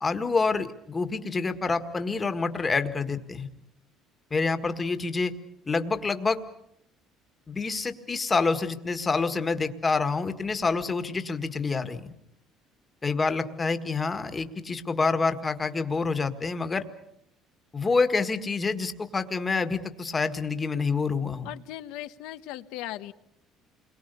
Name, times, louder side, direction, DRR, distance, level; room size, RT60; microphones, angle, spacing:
voice 1, 0.0-3.5 4.3-5.3 5.7-6.4 7.5-12.1 13.0-16.8 17.7-21.5, left 4 dB, 20° left, 8 dB, 1.7 m, -27 dB
voice 2, 21.4-23.1, left 14 dB, 85° left, 11 dB, 1.1 m, -38 dB
29.0 x 22.5 x 6.9 m, 0.74 s
cardioid pair, 135°, 0 cm